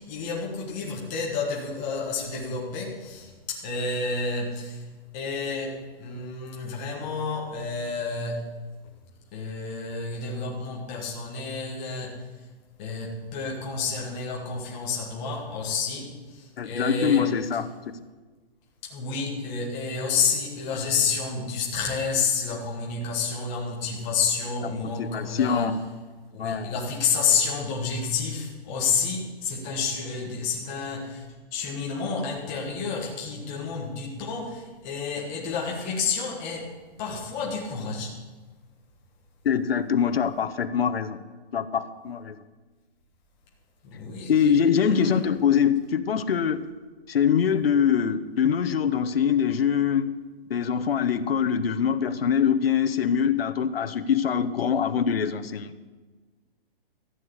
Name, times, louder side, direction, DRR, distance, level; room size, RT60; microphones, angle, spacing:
voice 1, 0.0-4.8 5.1-8.4 9.3-12.2 12.8-17.3 18.8-25.7 26.3-31.2 31.5-36.7 37.0-38.1 43.8-44.3 44.7-45.2, left 5 dB, 15° left, -3 dB, 1.4 m, -30 dB
voice 2, 16.6-17.7 24.6-25.8 26.4-26.8 39.4-41.2 41.5-42.4 44.3-46.7 47.1-50.1 50.5-55.7, left 7 dB, 70° left, 10 dB, 1.0 m, -24 dB
14.5 x 6.7 x 9.7 m, 1.3 s
hypercardioid pair, 180°, 30 cm